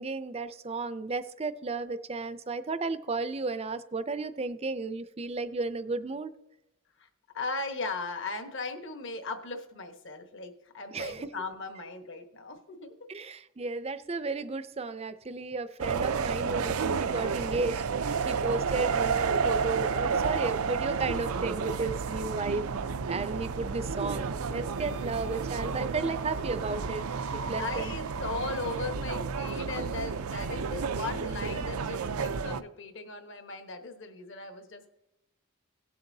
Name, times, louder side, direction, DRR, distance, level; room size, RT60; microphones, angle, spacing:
voice 1, 0.0-6.3 10.9-11.3 13.1-17.8 18.3-22.6 23.1-27.0 27.3-27.9, right 3 dB, 30° right, 12 dB, 0.5 m, -33 dB
voice 2, 7.3-12.9 24.9-25.3 27.6-34.9, left 3 dB, 55° left, 7 dB, 1.2 m, -38 dB
sound 1, 15.8-32.6, right 5 dB, 80° right, 0.5 m, -31 dB
17.5 x 7.8 x 2.7 m, 0.91 s
head